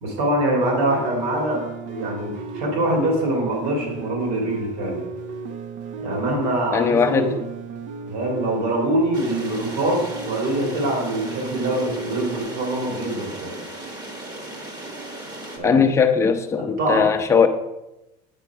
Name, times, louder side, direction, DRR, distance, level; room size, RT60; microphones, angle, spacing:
voice 1, 0.0-5.0 6.0-7.3 8.0-13.6 15.5-15.8 16.6-17.1, right 1 dB, 65° right, 0 dB, 2.2 m, -24 dB
sound 1, 0.6-12.4, right 3 dB, 45° right, 0.5 m, -34 dB
voice 2, 6.7-7.3 15.6-17.5, left 6 dB, 15° left, 4 dB, 0.6 m, -18 dB
sound 2, 9.1-15.6, right 1 dB, 25° right, 1.1 m, -36 dB
8.4 x 4.4 x 4.6 m, 0.93 s
cardioid pair, 150°, 17 cm